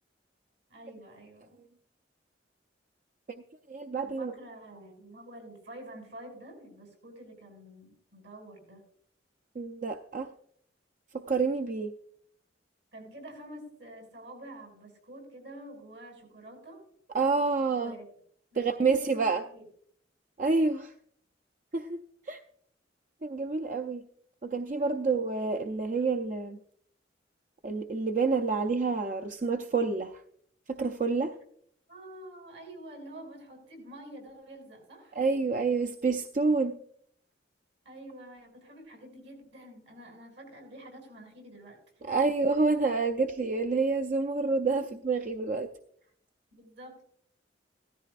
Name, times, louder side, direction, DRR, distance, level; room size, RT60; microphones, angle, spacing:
voice 1, 0.7-1.6 4.0-8.8 12.9-16.8 17.7-18.0 18.5-19.6 24.8-24.9 31.9-35.2 37.8-41.8 42.0-42.2 46.5-47.0, right 1 dB, 75° right, 1 dB, 6.5 m, -48 dB
voice 2, 3.7-4.3 9.6-10.3 11.1-11.9 17.1-17.9 18.5-19.4 20.4-20.9 21.7-22.0 22.3-22.4 23.2-24.0 24.4-26.6 27.6-30.2 30.7-31.3 35.2-36.8 42.1-45.7, right 4 dB, 45° right, 6 dB, 0.5 m, -28 dB
16.5 x 13.5 x 2.5 m, 0.64 s
head